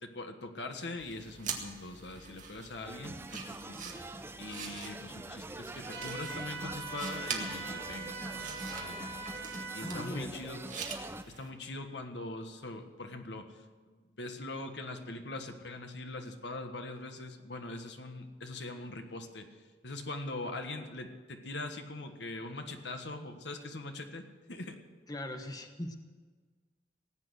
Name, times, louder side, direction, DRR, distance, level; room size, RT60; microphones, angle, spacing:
voice 1, 0.0-3.8 4.4-9.4 9.7-10.6 11.4-19.5 19.8-24.8, left 2 dB, 75° left, 5 dB, 1.5 m, -42 dB
sound 1, 1.0-11.5, right 6 dB, 45° right, 1.9 m, -45 dB
sound 2, 2.9-11.2, right 2 dB, 15° right, 0.5 m, -44 dB
sound 3, 5.9-10.1, right 3 dB, 70° right, 2.1 m, -42 dB
voice 2, 9.8-10.3 25.1-26.0, left 1 dB, 20° left, 5 dB, 1.1 m, -40 dB
18.0 x 8.7 x 7.9 m, 1.4 s
head